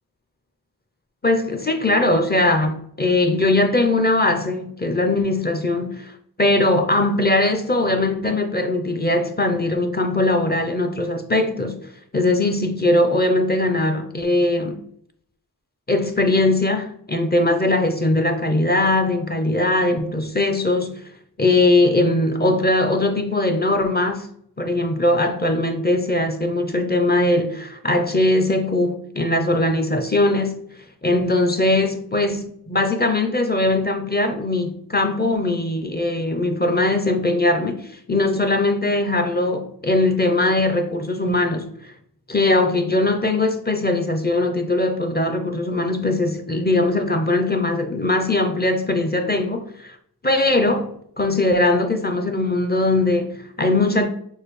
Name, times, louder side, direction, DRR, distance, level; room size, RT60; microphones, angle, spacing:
voice 1, 1.2-14.8 15.9-21.0 21.4-24.3 24.6-30.6 31.0-41.9 42.3-50.0 50.2-54.1, left 2 dB, 25° left, 0.6 m, -20 dB
6.3 x 2.4 x 3.1 m
wide cardioid pair, 50°, 38 cm